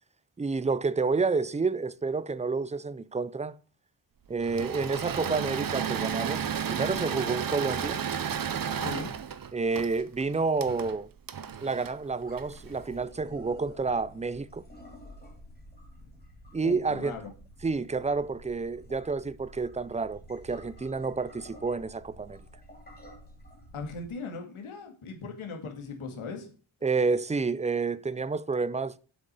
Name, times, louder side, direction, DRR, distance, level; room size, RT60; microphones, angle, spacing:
voice 1, 0.4-3.6 4.3-8.0 9.5-11.1 11.6-14.6 16.5-17.2 17.6-22.4 26.8-29.0, right 4 dB, 15° right, 0.4 m, -29 dB
Engine / Mechanisms, 4.4-12.8, right 8 dB, 45° right, 0.8 m, -33 dB
voice 2, 8.7-9.1 16.0-16.1 16.6-17.3 23.7-26.5, left 4 dB, 85° left, 2.2 m, -39 dB
sound 1, 12.2-24.1, equal, 20° left, 2.8 m, -51 dB
7.7 x 6.4 x 6.7 m
wide cardioid pair, 120°, 48 cm